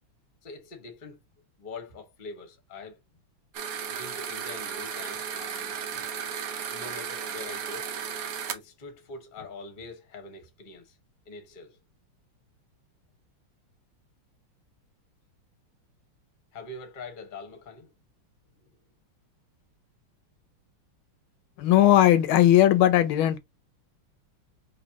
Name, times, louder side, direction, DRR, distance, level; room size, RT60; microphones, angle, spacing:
voice 1, 0.4-1.2 1.6-3.0 3.9-6.1 6.7-7.9 8.5-11.0 11.2-11.8 16.5-17.9 18.6-18.7, left 3 dB, 30° left, 1.0 m, -44 dB
sound 1, 3.5-8.6, right 7 dB, 65° right, 0.8 m, -34 dB
voice 2, 21.6-23.4, left 12 dB, 80° left, 1.4 m, -18 dB
5.2 x 3.1 x 2.8 m
omnidirectional pair, 2.3 m